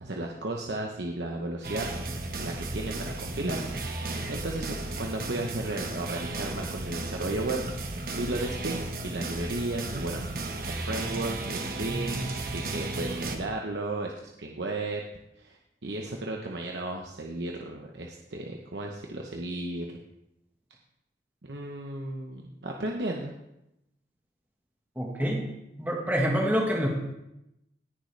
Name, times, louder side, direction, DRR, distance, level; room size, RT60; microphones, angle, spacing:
voice 1, 0.0-1.9 2.4-3.6 4.3-7.6 8.1-10.2 10.7-15.0 15.4-15.6 15.8-19.9 21.4-23.3, right 2 dB, 75° right, 1 dB, 0.9 m, -34 dB
sound 1, 1.6-13.4, right 2 dB, 55° right, 1.2 m, -34 dB
voice 2, 25.0-25.5 25.8-26.9, equal, 10° right, -1 dB, 1.4 m, -26 dB
18.0 x 6.5 x 3.3 m, 0.87 s
head